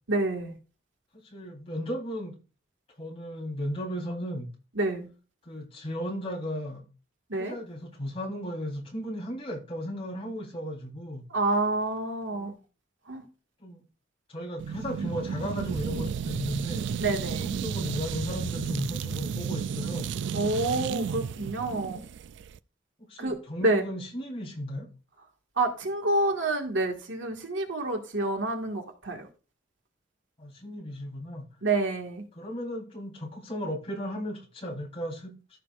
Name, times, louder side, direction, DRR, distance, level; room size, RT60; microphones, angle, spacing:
voice 1, 0.1-0.6 4.8-5.1 7.3-7.6 11.3-12.6 13.1-13.2 17.0-17.5 20.3-22.0 23.2-23.9 25.6-29.3 31.6-32.2, right 2 dB, 85° right, 1.9 m, -28 dB
voice 2, 1.1-2.4 3.0-4.5 5.4-6.8 7.3-11.3 12.3-12.5 13.6-13.8 14.3-17.1 17.6-20.1 23.1-24.9 30.4-31.5 32.3-35.4, equal, 30° left, 3.9 m, -35 dB
sound 1, 14.6-22.6, right 7 dB, 65° right, 0.3 m, -33 dB
14.5 x 6.1 x 2.5 m
head